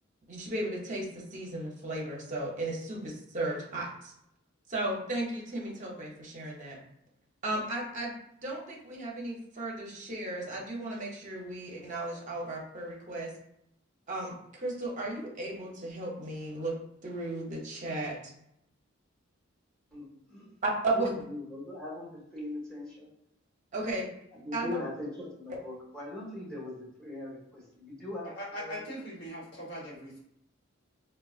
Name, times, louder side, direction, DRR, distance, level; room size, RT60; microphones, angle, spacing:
voice 1, 0.3-4.1 4.7-6.8 7.4-8.1 8.4-13.3 14.1-16.7 17.0-18.3 20.6-21.2 23.7-24.1 24.3-24.8, right 2 dB, 35° right, -2 dB, 0.8 m, -35 dB
voice 2, 19.9-20.5 20.9-23.1 24.4-28.8, left 1 dB, 5° left, -6 dB, 1.2 m, -41 dB
voice 3, 28.4-30.2, equal, 55° left, -5 dB, 1.2 m, -40 dB
3.7 x 2.2 x 2.4 m, 0.77 s
head